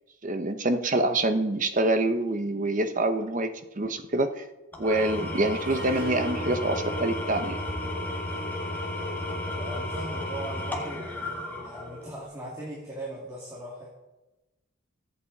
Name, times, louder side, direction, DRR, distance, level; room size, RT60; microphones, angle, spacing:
voice 1, 0.2-4.5 4.8-7.6, right 2 dB, 35° right, 8 dB, 1.0 m, -26 dB
Engine / Tools, 4.7-12.2, left 1 dB, 10° left, 2.0 m, -33 dB
Harp, 5.6-10.7, right 2 dB, 80° right, 2.1 m, -41 dB
voice 2, 9.6-13.9, right 1 dB, 15° right, -5 dB, 2.6 m, -39 dB
24.0 x 8.5 x 4.1 m, 1.0 s
head